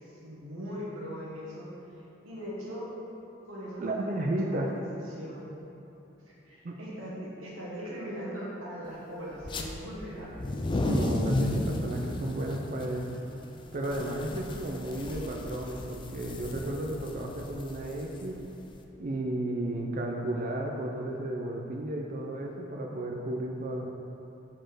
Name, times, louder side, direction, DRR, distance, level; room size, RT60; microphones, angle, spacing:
voice 1, 0.0-2.9 3.4-4.6 4.9-5.5 6.2-10.5 10.8-10.9, equal, 85° right, -7 dB, 1.3 m, -40 dB
voice 2, 3.8-4.7 6.6-6.7 10.8-13.2 13.7-18.4 19.0-23.9, right 1 dB, 40° right, 0 dB, 0.5 m, -33 dB
sound 1, 9.4-9.7 10.2-18.8, left 1 dB, 25° left, 0.4 m, -34 dB
5.1 x 4.3 x 5.9 m, 3.0 s
head